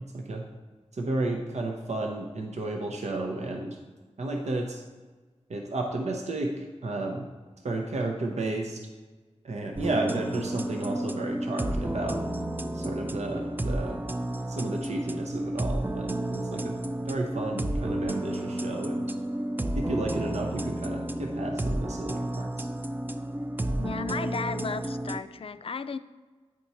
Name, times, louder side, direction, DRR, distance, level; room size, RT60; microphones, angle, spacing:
voice 1, 0.9-3.8 4.2-4.8 5.5-7.3 7.6-8.8 9.4-12.2 12.7-14.0 14.5-16.7 17.0-19.1 19.7-22.5, right 2 dB, 75° right, 2 dB, 0.7 m, -32 dB
sound 1, 9.8-25.2, right 1 dB, 15° right, 0.4 m, -31 dB
voice 2, 23.8-26.0, left 5 dB, 55° left, 12 dB, 0.4 m, -34 dB
9.1 x 4.5 x 4.1 m, 1.4 s
wide cardioid pair, 70°, 12 cm